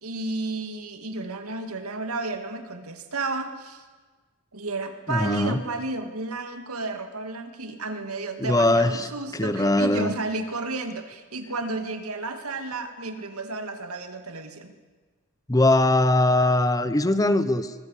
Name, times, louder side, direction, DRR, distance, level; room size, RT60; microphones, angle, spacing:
voice 1, 0.0-3.8 4.5-14.7, right 3 dB, 85° right, 6 dB, 2.2 m, -32 dB
voice 2, 5.1-5.6 8.4-10.1 15.5-17.7, left 2 dB, 15° left, 12 dB, 0.9 m, -21 dB
24.5 x 21.0 x 8.4 m, 1.4 s
head